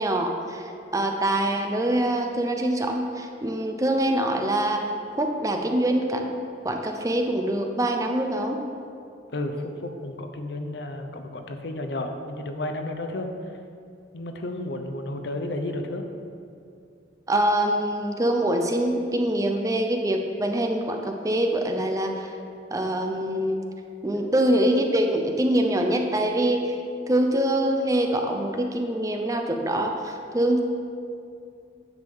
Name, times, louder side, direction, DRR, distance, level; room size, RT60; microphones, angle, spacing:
voice 1, 0.0-4.8 5.2-6.3 6.6-8.6 9.6-9.7 17.3-22.4 22.7-23.6 24.0-26.8 27.1-30.6, right 1 dB, 20° right, 3 dB, 0.5 m, -24 dB
voice 2, 9.3-13.3 14.1-16.0 24.1-24.3, left 1 dB, 65° left, 5 dB, 0.7 m, -32 dB
9.7 x 3.7 x 7.0 m, 2.5 s
head